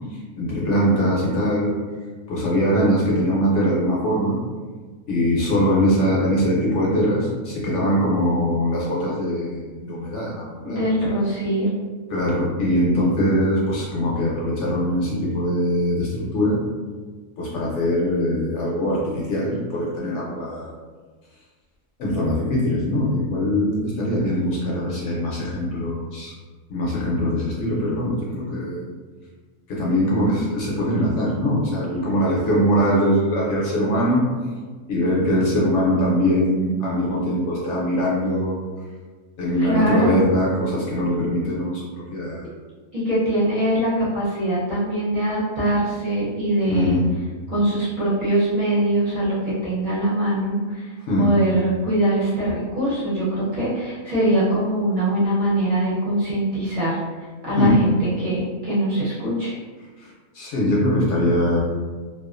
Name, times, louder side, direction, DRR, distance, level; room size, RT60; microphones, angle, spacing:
voice 1, 0.0-1.7 2.3-4.4 5.1-10.8 12.1-16.6 17.4-20.7 22.0-26.3 26.7-28.9 29.7-34.3 34.9-38.6 39.4-41.8 42.1-42.5 46.7-47.1 51.0-51.4 57.6-57.8 60.0-61.6, equal, 65° left, -4 dB, 0.8 m, -22 dB
voice 2, 10.6-11.8 39.7-40.2 42.9-47.0 47.5-50.9 51.2-57.0 57.4-57.9 58.2-59.5, right 1 dB, 45° right, -10 dB, 0.7 m, -22 dB
2.3 x 2.3 x 2.4 m, 1.4 s
omnidirectional pair, 1.4 m